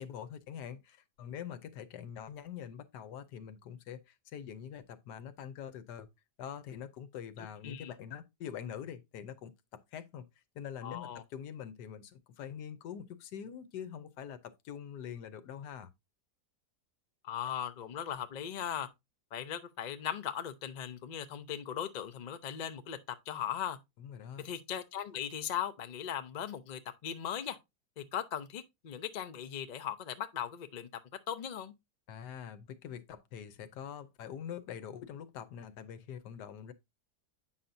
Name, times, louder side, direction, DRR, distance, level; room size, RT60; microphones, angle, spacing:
voice 1, 0.0-6.1 6.4-10.2 10.5-15.9 24.0-24.5 32.1-36.7, left 8 dB, 85° left, 1.3 m, -44 dB
voice 2, 10.8-11.2 17.2-18.9 19.3-23.8 24.4-27.6 28.0-30.9 31.3-31.7, left 9 dB, 70° left, 0.4 m, -38 dB
8.4 x 5.7 x 2.6 m
omnidirectional pair, 1.7 m